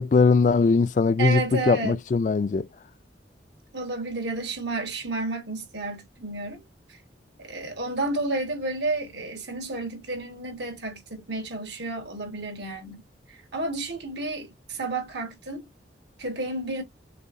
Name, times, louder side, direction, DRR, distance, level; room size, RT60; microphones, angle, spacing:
voice 1, 0.0-1.4 1.7-2.7, left 4 dB, 45° left, 0.3 m, -20 dB
voice 2, 1.2-2.0 3.7-6.6 7.4-13.0 13.5-15.7 16.2-16.8, right 2 dB, 75° right, 1.7 m, -31 dB
6.5 x 2.7 x 2.6 m
head